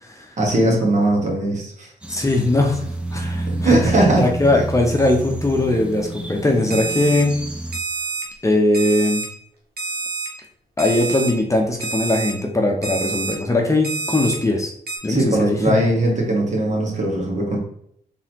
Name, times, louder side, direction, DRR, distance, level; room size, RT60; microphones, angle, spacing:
voice 1, 0.4-1.9 3.6-4.3 15.1-17.6, right 1 dB, 50° right, -1 dB, 1.7 m, -19 dB
sound 1, 2.0-7.8, right 2 dB, 5° right, 0.6 m, -29 dB
voice 2, 2.1-2.8 3.1-3.8 4.2-7.4 8.4-9.2 10.8-14.7 15.0-15.6, left 2 dB, 20° left, 1 dB, 0.8 m, -20 dB
Alarm, 6.7-7.2 7.7-8.2 8.7-9.2 9.8-10.3 10.8-11.3 11.8-12.3 12.8-13.3 13.8-14.3 14.9-15.0, right 3 dB, 75° right, 1.2 m, -27 dB
4.0 x 3.7 x 2.9 m, 0.69 s
cardioid pair, 65°, 16 cm